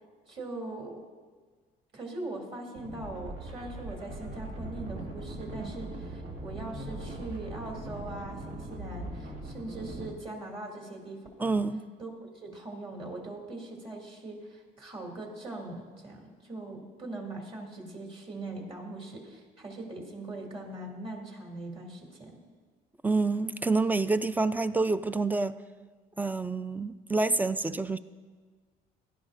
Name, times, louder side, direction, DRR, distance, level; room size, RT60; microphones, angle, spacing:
voice 1, 0.3-1.0 1.9-11.6 12.0-22.4, right 2 dB, 35° right, 0 dB, 2.5 m, -41 dB
sound 1, 2.7-10.1, right 1 dB, 90° right, 2.0 m, -40 dB
voice 2, 11.4-11.8 23.0-25.5 26.2-28.0, right 3 dB, 10° right, 14 dB, 0.3 m, -27 dB
17.0 x 11.0 x 2.5 m, 1.5 s
cardioid pair, 110°, 17 cm